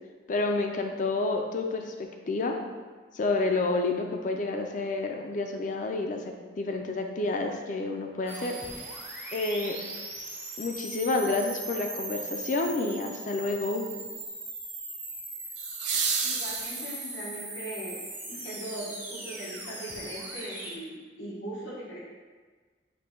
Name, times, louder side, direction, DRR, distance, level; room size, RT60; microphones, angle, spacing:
voice 1, 0.3-2.6 3.1-6.2 6.6-9.0 9.3-9.8 10.6-13.8, left 3 dB, 40° left, 4 dB, 0.4 m, -29 dB
sound 1, 8.3-20.8, right 2 dB, 10° right, 0.5 m, -39 dB
sound 2, 9.9-10.0 15.6-17.4 19.5-19.6, right 5 dB, 65° right, 0.5 m, -31 dB
voice 2, 16.2-22.0, right 1 dB, 85° left, -6 dB, 1.1 m, -40 dB
5.1 x 2.2 x 4.4 m, 1.4 s
head